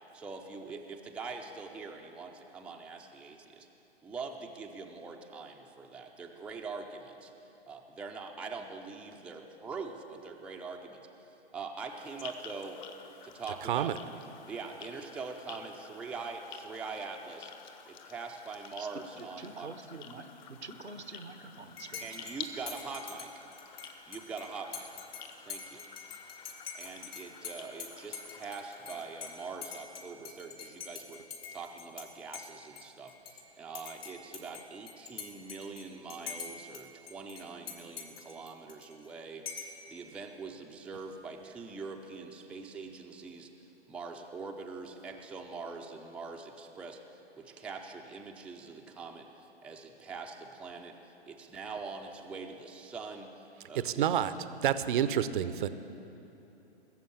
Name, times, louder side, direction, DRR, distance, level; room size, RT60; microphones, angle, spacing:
voice 1, 0.1-3.7 4.0-7.3 7.7-11.1 11.5-12.8 13.2-13.9 14.5-17.5 17.9-19.7 20.2-20.3 22.0-23.3 24.1-24.9 25.5-25.8 26.7-31.2 31.5-53.3 53.7-54.0, right 4 dB, 5° right, 1 dB, 0.5 m, -43 dB
sound 1, 11.8-30.3, left 7 dB, 45° left, 1.3 m, -51 dB
voice 2, 13.6-13.9 53.8-54.3 54.6-55.7, right 10 dB, 50° right, 13 dB, 0.7 m, -28 dB
voice 3, 19.2-22.1, right 3 dB, 85° right, 9 dB, 1.1 m, -46 dB
Dishes pots and pans / Cutlery silverware / Chink clink, 21.8-32.1 32.3-33.4 33.7-36.8 37.1-39.1 39.5-39.8, left 6 dB, 65° left, 2.8 m, -45 dB
19.0 x 7.4 x 8.8 m, 2.9 s
figure-of-eight pair, 120°, 33 cm